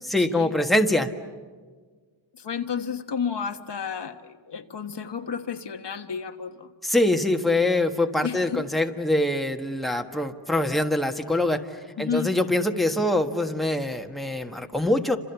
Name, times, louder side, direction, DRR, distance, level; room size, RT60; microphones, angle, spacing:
voice 1, 0.1-1.1 6.8-11.6 12.0-15.2, left 1 dB, ahead, 4 dB, 1.5 m, -24 dB
voice 2, 2.3-6.7 8.2-8.6 12.0-12.3, left 7 dB, 65° left, 6 dB, 1.4 m, -31 dB
29.5 x 27.0 x 7.0 m, 1.5 s
wide cardioid pair, 100°, 45 cm